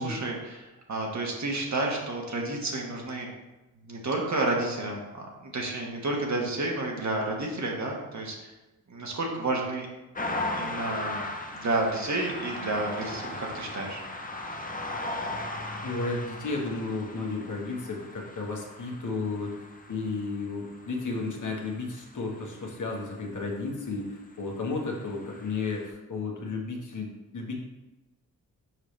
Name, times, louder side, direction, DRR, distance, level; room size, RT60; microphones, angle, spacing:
voice 1, 0.0-3.3 3.8-8.5 8.9-9.9 10.5-11.2 11.5-14.0, right 2 dB, 50° right, -1 dB, 1.6 m, -30 dB
sound 1, 10.1-23.3 24.3-25.9, left 2 dB, 25° left, 0.8 m, -38 dB
voice 2, 15.8-19.6 19.9-27.6, left 3 dB, 55° left, 0 dB, 1.5 m, -33 dB
6.4 x 4.9 x 3.3 m, 1.0 s
cardioid pair, 65°, 35 cm